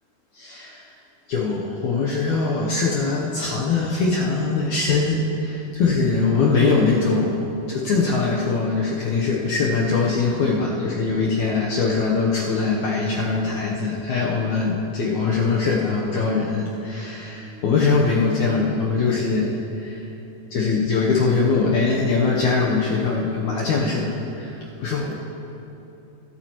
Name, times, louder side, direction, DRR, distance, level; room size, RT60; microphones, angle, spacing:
voice 1, 0.3-0.8 1.3-7.4 7.7-20.1 20.5-25.1, left 4 dB, 70° left, -3 dB, 1.8 m, -22 dB
26.0 x 8.9 x 3.0 m, 3.0 s
omnidirectional pair, 4.5 m